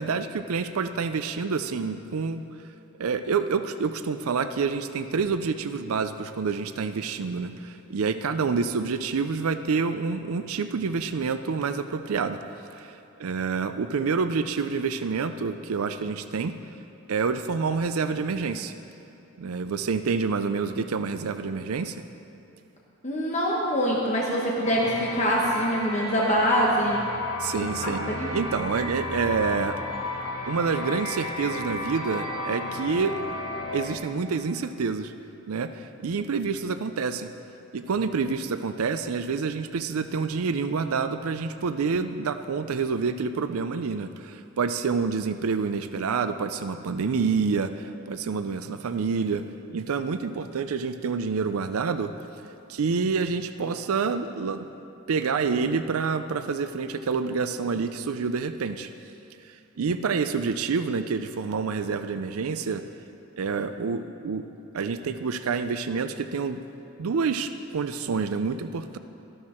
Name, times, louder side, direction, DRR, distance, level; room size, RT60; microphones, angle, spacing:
voice 1, 0.0-2.4 3.0-12.4 12.7-16.5 17.1-18.7 19.4-22.0 27.4-29.8 30.5-33.2 33.7-35.1 35.5-37.3 37.7-49.4 49.7-52.1 52.7-54.7 55.1-58.9 59.4-62.8 63.4-64.5 64.7-66.6 67.0-69.0, right 5 dB, 80° right, 10 dB, 0.5 m, -28 dB
voice 2, 23.0-27.0 27.6-28.3, equal, 35° left, -3 dB, 1.1 m, -24 dB
sound 1, 24.6-33.9, left 2 dB, 75° left, 1.6 m, -33 dB
13.0 x 12.0 x 4.4 m, 2.9 s
head